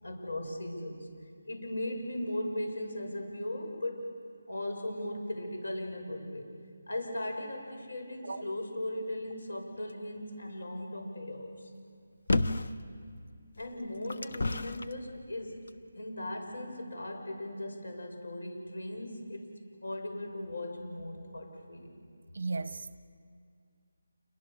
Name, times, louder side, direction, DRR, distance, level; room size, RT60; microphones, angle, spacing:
voice 1, 0.0-1.1 1.4-4.2 4.5-6.5 6.9-11.7 13.6-15.7 15.9-19.5 19.8-22.0, left 1 dB, 75° left, 7.2 m, -38 dB
sound 1, 12.3-12.8 13.6-14.9 15.7-15.8, left 2 dB, 60° left, 1.0 m, -30 dB
voice 2, 22.3-23.0, right 3 dB, 55° right, 1.2 m, -35 dB
28.5 x 23.5 x 7.1 m
figure-of-eight pair, 175°, 0 cm